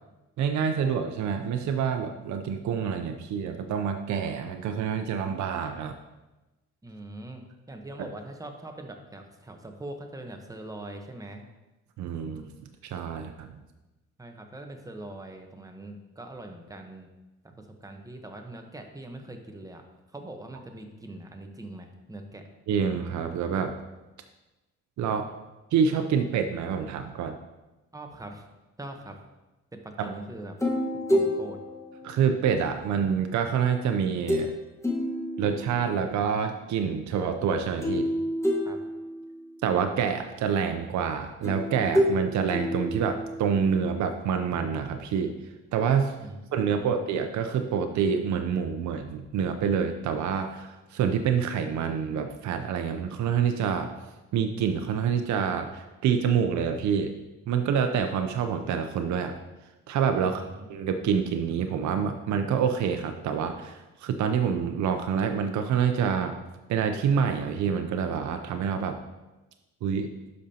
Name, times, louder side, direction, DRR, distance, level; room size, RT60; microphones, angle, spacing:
voice 1, 0.4-6.0 8.0-8.1 12.0-12.4 12.8-13.6 22.7-23.7 25.0-25.3 25.7-27.4 30.0-30.1 32.0-34.5 35.4-38.1 39.6-45.3 45.7-46.1 46.5-53.9 54.3-57.1 57.5-59.3 59.9-60.4 60.7-66.4 66.7-69.0 69.8-70.1, right 7 dB, 70° right, 6 dB, 0.6 m, -27 dB
voice 2, 6.8-11.4 14.2-17.1 17.6-19.8 20.1-22.4 27.9-28.4 28.8-29.2 29.7-30.6 31.1-31.6 38.6-38.8 46.2-47.0 60.2-60.7, right 1 dB, 10° right, 4 dB, 1.0 m, -42 dB
sound 1, 30.6-32.9 34.3-34.6 34.8-36.1 37.8-39.5 41.4-43.7, left 1 dB, 10° left, 1.4 m, -29 dB
12.0 x 5.1 x 2.9 m, 1.1 s
cardioid pair, 90°, 30 cm